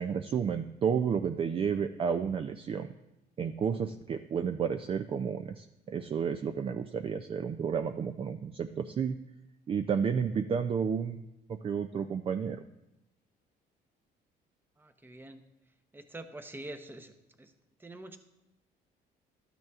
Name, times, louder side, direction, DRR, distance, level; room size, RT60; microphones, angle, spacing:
voice 1, 0.0-2.9 3.4-9.2 9.7-12.6, right 7 dB, 35° right, 8 dB, 0.4 m, -31 dB
voice 2, 14.8-15.4 15.9-17.1 17.4-17.5 17.8-18.2, right 1 dB, 10° right, 7 dB, 0.8 m, -45 dB
12.0 x 9.1 x 2.4 m, 0.91 s
cardioid pair, 110°, 17 cm